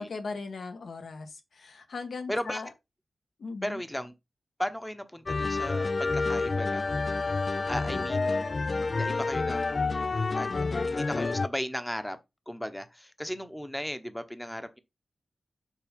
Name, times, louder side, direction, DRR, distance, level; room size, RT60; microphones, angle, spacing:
voice 1, 0.0-2.7 3.4-3.8 10.5-10.9, left 4 dB, 75° left, 1.6 m, -38 dB
voice 2, 2.3-2.6 3.6-4.1 4.6-7.0 7.7-10.5 10.8-12.2 12.5-14.8, equal, 5° left, 0.9 m, -36 dB
sound 1, 5.3-11.5, left 3 dB, 40° left, 0.4 m, -29 dB
7.4 x 5.1 x 5.2 m
wide cardioid pair, 150°, 0 cm